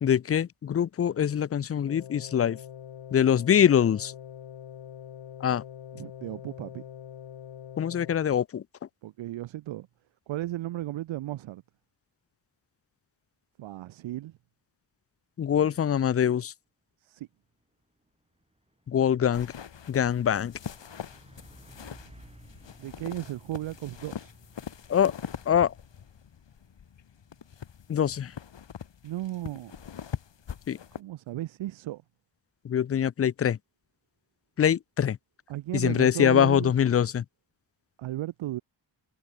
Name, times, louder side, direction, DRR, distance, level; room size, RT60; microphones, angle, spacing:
voice 1, 0.0-2.6 3.1-4.1 5.4-5.6 7.8-8.6 15.4-16.5 18.9-19.5 19.9-20.5 24.9-25.1 25.5-25.7 27.9-28.3 30.7-30.8 32.6-33.6 34.6-35.2 35.7-37.2, left 9 dB, 35° left, 0.4 m, -24 dB
sound 1, 1.9-8.1, left 9 dB, 85° left, 2.4 m, -44 dB
voice 2, 5.9-6.8 9.0-9.9 10.3-11.6 13.6-14.3 17.0-17.3 22.8-24.3 29.0-29.8 31.0-32.0 35.5-36.7 38.0-38.6, right 15 dB, 80° right, 0.6 m, -35 dB
Truck, 17.3-31.6, right 1 dB, 15° right, 5.8 m, -59 dB
sound 2, 19.3-31.0, left 8 dB, 70° left, 3.7 m, -43 dB
wide cardioid pair, 110°, 46 cm